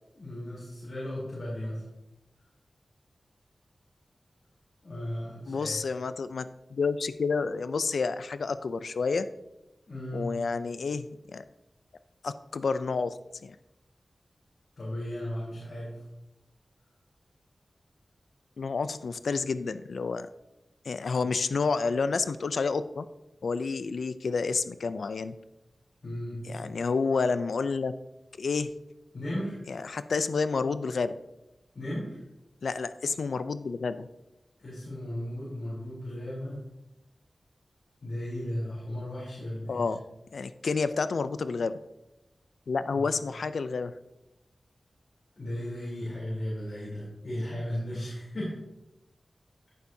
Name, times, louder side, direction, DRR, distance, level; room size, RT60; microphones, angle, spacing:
voice 1, 0.1-1.8 4.8-5.8 9.9-10.3 14.8-16.0 26.0-26.4 29.1-29.6 31.7-32.2 34.6-36.6 38.0-39.9 42.9-43.1 45.4-48.6, left 1 dB, 65° left, -8 dB, 3.4 m, -35 dB
voice 2, 5.5-9.3 10.1-11.4 12.2-13.2 13.4-13.6 18.6-20.3 20.9-23.1 23.4-25.3 26.5-27.9 28.4-28.7 29.7-31.2 32.6-34.1 39.7-40.0 40.3-41.7 42.7-43.9, left 4 dB, 85° left, 12 dB, 0.3 m, -29 dB
14.0 x 6.9 x 2.7 m, 0.94 s
wide cardioid pair, 80°, 0 cm